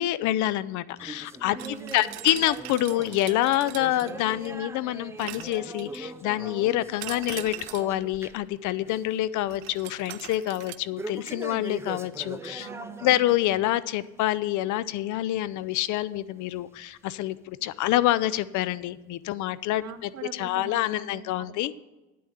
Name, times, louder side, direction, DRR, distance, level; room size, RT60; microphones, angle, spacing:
voice 1, 0.0-1.6 1.9-12.7 13.0-21.8, left 14 dB, 60° left, 18 dB, 0.6 m, -27 dB
sound 1, 1.0-8.5 8.8-9.2 9.5-9.6 11.0-13.6 14.0-14.2 14.9-15.0 15.9-16.0 16.8-16.9, right 2 dB, 10° right, 0.6 m, -41 dB
voice 2, 1.6-2.1 12.6-13.2 19.8-21.5, right 7 dB, 50° right, 10 dB, 1.0 m, -43 dB
sound 2, 1.6-4.6 5.2-6.2 7.0-8.0 9.5-10.8, right 17 dB, 85° right, 0.7 m, -41 dB
9.5 x 8.4 x 5.7 m, 1.1 s
cardioid pair, 110°, 34 cm